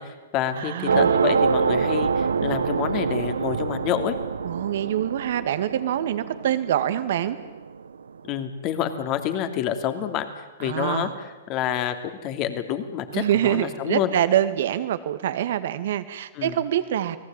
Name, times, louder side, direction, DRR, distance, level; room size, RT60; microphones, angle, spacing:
voice 1, 0.0-4.1 8.2-11.9 12.2-14.1 16.3-16.6, left 10 dB, 35° left, 8 dB, 2.9 m, -28 dB
voice 2, 0.6-1.2 4.4-7.4 10.6-11.1 13.1-17.2, right 11 dB, 60° right, 12 dB, 2.2 m, -25 dB
sound 1, 0.9-7.7, right 5 dB, 90° right, 1.1 m, -25 dB
29.5 x 19.0 x 9.2 m, 1.2 s
hypercardioid pair, 130°, 0 cm